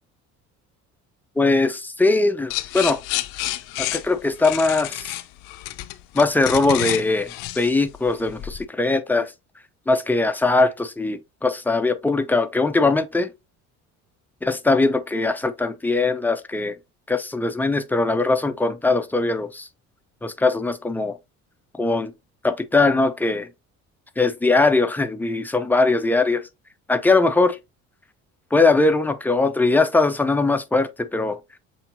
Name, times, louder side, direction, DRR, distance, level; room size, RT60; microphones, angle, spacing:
voice 1, 1.4-3.0 3.8-5.1 6.1-9.3 9.9-13.3 14.4-16.8 17.1-19.7 20.2-21.2 21.8-22.1 22.4-23.5 24.2-26.4 26.9-27.6 28.5-31.4, left 3 dB, 5° left, 0.6 m, -20 dB
sound 1, 2.5-8.6, left 16 dB, 50° left, 0.6 m, -29 dB
6.6 x 3.0 x 2.6 m
figure-of-eight pair, 55°, 43 cm